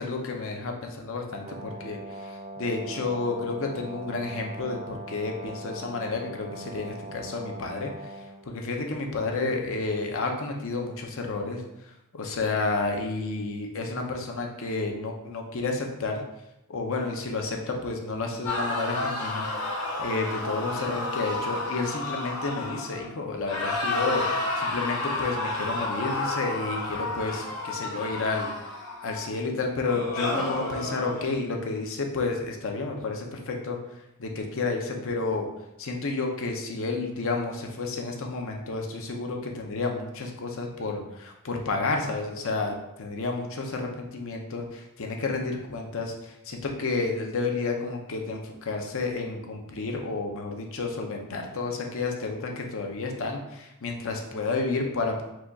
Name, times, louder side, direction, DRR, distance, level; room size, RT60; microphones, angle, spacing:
voice 1, 0.0-7.9 8.5-11.6 12.1-16.2 16.7-19.5 20.0-28.5 29.0-33.8 34.2-35.5 35.8-55.3, left 3 dB, 65° left, 2 dB, 0.7 m, -31 dB
Brass instrument, 1.4-8.4, right 1 dB, 30° right, 0.3 m, -41 dB
sound 1, 18.4-23.1 23.4-29.3 29.8-31.2, left 2 dB, 80° left, 1.1 m, -31 dB
4.8 x 2.4 x 4.0 m, 0.86 s
head